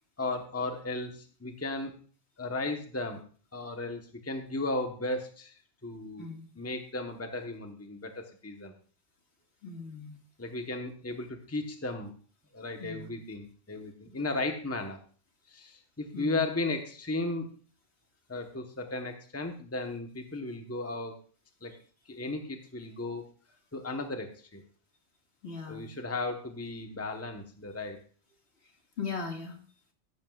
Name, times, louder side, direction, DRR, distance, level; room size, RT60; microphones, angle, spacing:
voice 1, 0.2-1.9 2.4-3.2 3.5-5.5 5.8-8.7 10.4-12.1 12.5-15.0 15.5-17.5 18.3-21.1 21.6-21.7 22.1-23.2 23.7-24.6 25.7-28.0, left 2 dB, 15° left, 4 dB, 1.1 m, -35 dB
voice 2, 9.6-10.2 12.8-13.1 16.1-16.4 25.4-25.9 29.0-29.6, left 5 dB, 65° left, 2 dB, 2.3 m, -38 dB
14.5 x 12.0 x 2.4 m, 0.42 s
omnidirectional pair, 1.2 m